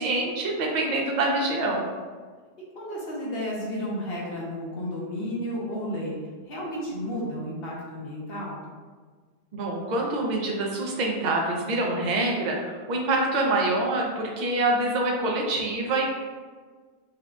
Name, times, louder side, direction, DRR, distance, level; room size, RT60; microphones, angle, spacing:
voice 1, 0.0-1.9 9.5-16.1, right 2 dB, 45° right, 0 dB, 0.6 m, -26 dB
voice 2, 2.7-6.2 6.4-8.6, equal, 55° left, -4 dB, 1.1 m, -32 dB
5.9 x 2.3 x 2.4 m, 1.5 s
omnidirectional pair, 1.2 m